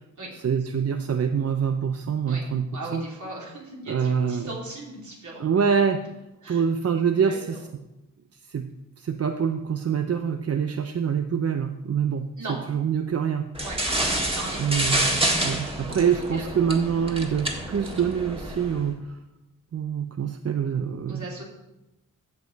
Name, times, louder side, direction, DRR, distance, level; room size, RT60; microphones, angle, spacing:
voice 1, 0.4-2.7 2.9-3.0 3.9-4.5 5.4-6.1 6.5-7.6 8.4-8.7 9.0-12.3 12.7-13.5 14.6-15.1 15.4-19.2 19.7-21.4, right 7 dB, 50° right, 7 dB, 0.5 m, -25 dB
voice 2, 2.7-5.4 6.4-6.6 7.3-7.6 12.4-12.6 13.6-13.8 14.3-14.8 15.9-16.4 21.1-21.4, right 2 dB, 65° right, -4 dB, 3.0 m, -38 dB
sound 1, 13.5-18.8, right 1 dB, 15° right, 1.6 m, -28 dB
15.0 x 5.1 x 4.0 m, 0.95 s
wide cardioid pair, 85°, 32 cm